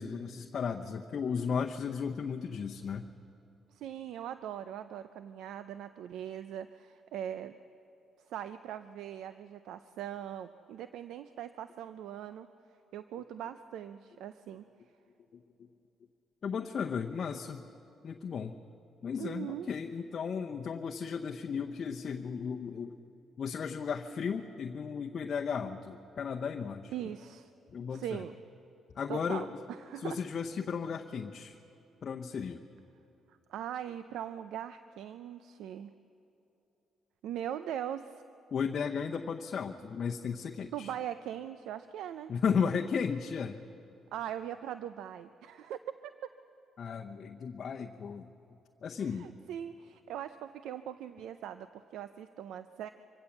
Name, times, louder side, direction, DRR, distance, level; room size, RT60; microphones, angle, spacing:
voice 1, 0.0-3.0 16.4-17.7 18.0-18.6 19.0-23.0 23.4-26.9 27.7-28.2 28.9-29.5 30.0-31.6 32.0-32.6 38.5-40.9 42.3-43.6 46.8-48.3 48.8-49.3, left 6 dB, 50° left, 2 dB, 0.8 m, -35 dB
voice 2, 3.7-7.6 8.3-12.5 12.9-14.6 19.2-19.7 26.9-27.5 27.9-28.3 29.1-30.2 33.3-35.9 37.2-38.2 40.6-42.3 44.1-45.8 49.0-52.9, right 10 dB, 85° right, 11 dB, 0.5 m, -41 dB
24.5 x 16.5 x 7.2 m, 3.0 s
cardioid pair, 90°, 0 cm